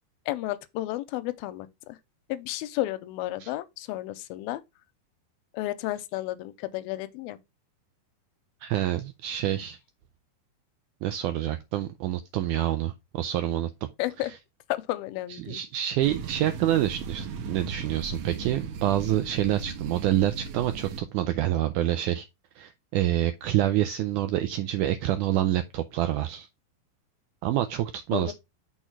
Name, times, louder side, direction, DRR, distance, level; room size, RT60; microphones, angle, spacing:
voice 1, 0.3-2.0 2.3-4.6 5.5-7.4 14.0-14.3 14.7-15.6 28.1-28.3, left 16 dB, 90° left, 2.4 m, -32 dB
voice 2, 8.6-9.8 11.0-13.7 14.2-14.3 15.3-22.3 22.6-26.5 27.4-28.3, right 13 dB, 85° right, 1.8 m, -27 dB
sound 1, 16.0-21.0, right 5 dB, 70° right, 2.2 m, -37 dB
6.4 x 3.7 x 5.7 m
omnidirectional pair, 4.2 m